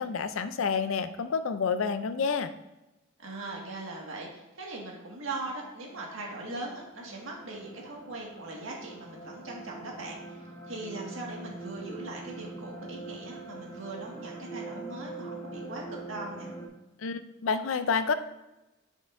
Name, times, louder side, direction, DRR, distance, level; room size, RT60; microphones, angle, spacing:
voice 1, 0.0-2.5 17.0-18.1, left 5 dB, 80° left, 11 dB, 0.5 m, -29 dB
voice 2, 3.2-16.5, right 2 dB, 75° right, -2 dB, 1.8 m, -40 dB
sound 1, 5.1-16.7, right 2 dB, 20° left, 1.1 m, -44 dB
8.8 x 5.3 x 2.6 m, 1.0 s
head